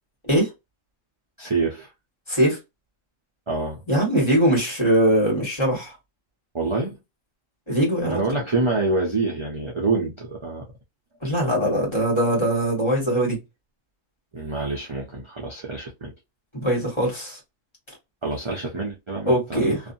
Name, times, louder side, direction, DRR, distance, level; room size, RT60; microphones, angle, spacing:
voice 1, 1.4-1.9 3.5-3.8 6.5-7.0 8.0-10.7 14.3-16.1 18.2-19.7, right 3 dB, 30° right, 0.6 m, -26 dB
voice 2, 2.3-2.6 3.9-5.9 7.7-8.2 11.2-13.4 16.5-17.4 19.2-19.8, right 1 dB, 20° left, 1.5 m, -21 dB
2.6 x 2.4 x 2.6 m
omnidirectional pair, 1.3 m